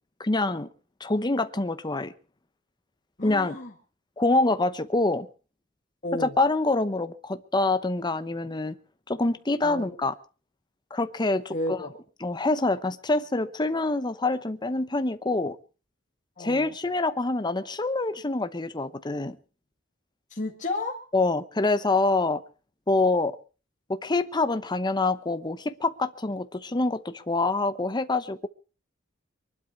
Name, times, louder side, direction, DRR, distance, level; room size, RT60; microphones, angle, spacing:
voice 1, 0.2-0.7 1.0-2.1 3.2-3.6 4.2-5.3 6.1-8.8 9.1-10.2 10.9-11.8 12.2-15.6 16.4-19.4 21.1-22.4 22.9-23.4 23.9-28.5, left 2 dB, 20° left, 0.9 m, -26 dB
voice 2, 3.2-3.7 6.0-6.3 9.6-9.9 11.5-12.0 16.4-16.7 20.3-21.0, left 2 dB, 40° left, 2.2 m, -32 dB
23.5 x 12.0 x 4.5 m
head